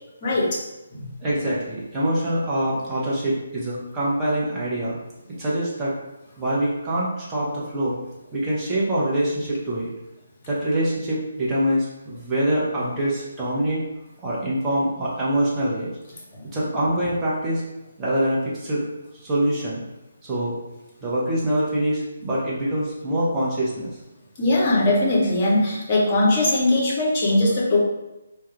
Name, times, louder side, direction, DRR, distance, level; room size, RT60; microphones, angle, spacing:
voice 1, 0.2-0.6 0.9-1.0 16.3-16.5 24.4-27.8, left 1 dB, 25° left, -4 dB, 0.8 m, -20 dB
voice 2, 1.2-5.0 5.4-5.9 6.4-8.0 8.3-9.9 10.5-13.8 14.2-15.9 16.5-17.6 18.0-18.8 19.2-19.8 20.2-20.6 21.0-23.9, right 1 dB, 15° right, -7 dB, 0.7 m, -24 dB
2.2 x 2.1 x 3.1 m, 0.96 s
figure-of-eight pair, 145°, 0 cm